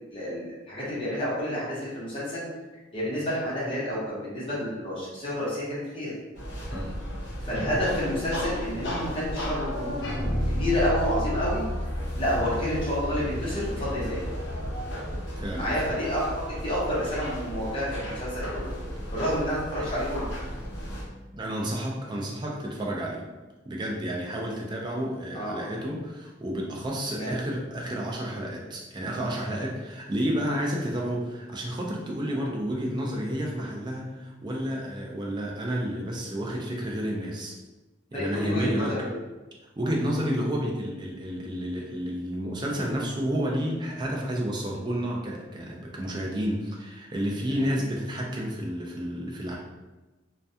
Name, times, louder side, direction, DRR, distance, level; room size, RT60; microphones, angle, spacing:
voice 1, 0.1-2.5 2.9-6.1 7.4-11.6 12.2-14.2 15.5-18.7 19.1-20.3 25.3-25.6 27.1-27.4 32.3-32.5 38.1-39.2 47.5-47.7, equal, 30° left, -8 dB, 0.9 m, -29 dB
sound 1, 6.3-21.0, equal, 65° left, 0.7 m, -35 dB
Bass guitar, 10.2-20.0, left 1 dB, ahead, 1.1 m, -35 dB
voice 2, 15.4-15.8 19.8-19.9 21.3-23.2 23.7-37.6 38.1-39.0 39.8-49.6, equal, 25° right, -2 dB, 0.4 m, -30 dB
2.3 x 2.2 x 2.6 m, 1.1 s
head